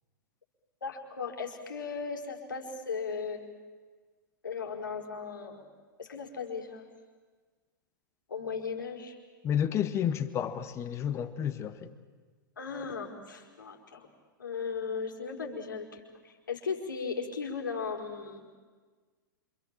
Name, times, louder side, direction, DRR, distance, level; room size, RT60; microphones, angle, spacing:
voice 1, 0.8-3.4 4.4-5.6 6.0-6.9 8.3-9.2 12.6-14.1 14.4-18.4, left 5 dB, 70° left, 1 dB, 4.8 m, -37 dB
voice 2, 9.4-11.9, left 9 dB, 25° left, 11 dB, 1.8 m, -31 dB
27.5 x 27.0 x 7.6 m, 1.4 s
figure-of-eight pair, 100°, 11 cm